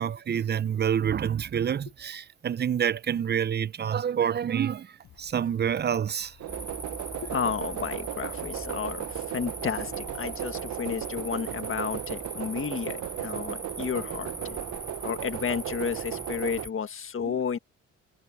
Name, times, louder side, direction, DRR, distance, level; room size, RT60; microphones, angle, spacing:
voice 1, 0.0-4.9 5.2-6.4 17.2-17.4, right 8 dB, 35° right, 0.5 m, -27 dB
sound 1, 5.0-11.3, left 11 dB, 75° left, 6.8 m, -56 dB
sound 2, 6.4-16.7, right 13 dB, 70° right, 0.9 m, -36 dB
sound 3, 6.5-16.7, right 1 dB, 5° right, 4.8 m, -41 dB
voice 2, 7.1-14.6 15.0-17.6, left 7 dB, 45° left, 1.6 m, -32 dB
cardioid pair, 90°, 30 cm